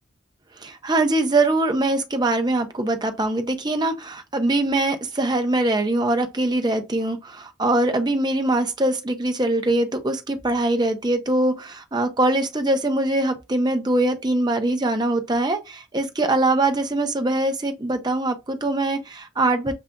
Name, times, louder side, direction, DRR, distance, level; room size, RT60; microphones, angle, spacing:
voice 1, 0.6-19.7, right 2 dB, 20° right, 0.6 m, -22 dB
6.8 x 2.4 x 2.2 m
head